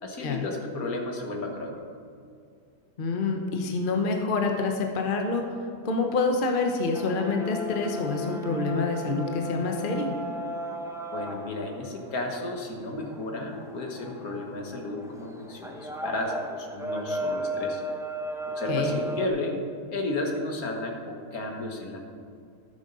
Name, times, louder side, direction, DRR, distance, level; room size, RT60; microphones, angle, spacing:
voice 1, 0.0-1.8 11.1-17.8 18.5-19.6 19.9-22.0, left 2 dB, 65° left, 2 dB, 1.8 m, -33 dB
voice 2, 3.0-5.4 5.8-10.1 18.7-19.0, left 3 dB, 40° left, 3 dB, 1.0 m, -27 dB
sound 1, 6.9-19.3, equal, 5° right, 0.5 m, -35 dB
13.0 x 7.4 x 5.4 m, 2.4 s
omnidirectional pair, 1.7 m